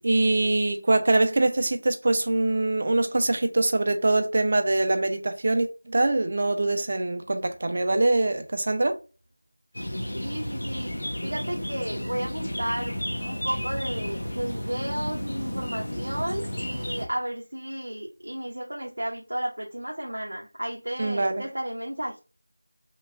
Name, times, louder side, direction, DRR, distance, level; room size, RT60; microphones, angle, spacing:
voice 1, 0.0-9.0 21.0-21.4, right 2 dB, 25° right, 0.4 m, -23 dB
sound 1, 9.7-17.1, equal, 35° left, 0.9 m, -32 dB
voice 2, 9.8-10.9 11.2-22.2, right 1 dB, 85° right, 0.9 m, -33 dB
5.6 x 2.4 x 2.3 m
figure-of-eight pair, 175°, 0 cm